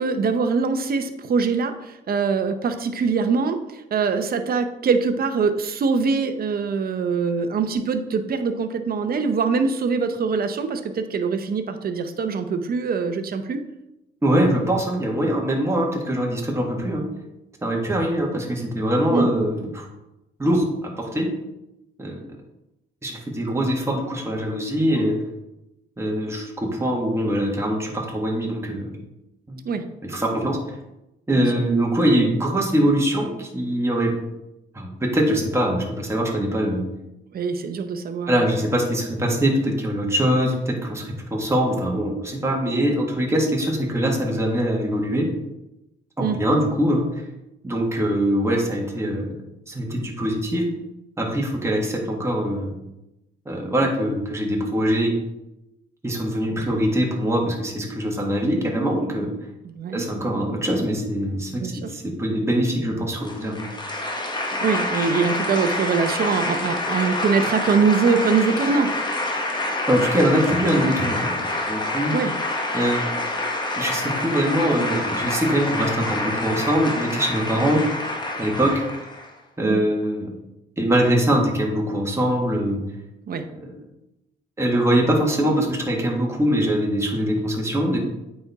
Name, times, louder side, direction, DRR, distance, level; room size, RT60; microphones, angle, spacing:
voice 1, 0.0-3.6 3.9-13.6 19.1-19.3 29.6-29.9 31.4-31.5 37.3-38.4 46.2-46.4 59.7-60.0 61.6-61.9 64.6-68.9 72.1-72.3 79.6-79.8 83.3-83.4, right 5 dB, 50° right, 8 dB, 0.8 m, -23 dB
voice 2, 14.2-17.0 17.6-19.9 20.4-21.3 22.0-22.3 23.0-25.2 26.0-28.9 29.5-29.6 30.0-30.6 31.3-34.1 34.7-36.8 38.3-45.3 46.2-47.2 47.6-49.3 49.7-50.6 51.2-52.7 53.4-55.1 56.0-59.3 59.9-63.7 69.9-71.4 71.7-72.2 72.7-73.1 73.8-77.8 78.4-78.7 79.6-80.3 80.8-82.8 83.5-83.7 84.6-88.0, equal, 15° right, -1 dB, 1.6 m, -23 dB
sound 1, 63.2-79.3, left 2 dB, 20° left, 1.3 m, -27 dB
8.6 x 4.4 x 3.5 m, 0.92 s
cardioid pair, 90°, 20 cm